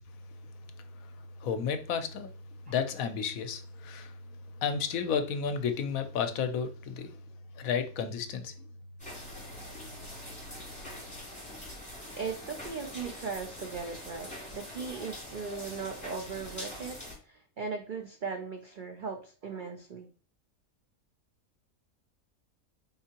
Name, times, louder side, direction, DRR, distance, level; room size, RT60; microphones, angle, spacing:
voice 1, 1.4-2.3 2.7-4.1 4.6-7.2 7.6-8.5, left 6 dB, 75° left, 1.0 m, -32 dB
sound 1, 9.0-17.2, left 1 dB, 5° left, 2.3 m, -44 dB
voice 2, 12.2-17.0 17.2-20.1, right 5 dB, 70° right, 0.4 m, -38 dB
4.4 x 3.8 x 2.8 m
omnidirectional pair, 1.5 m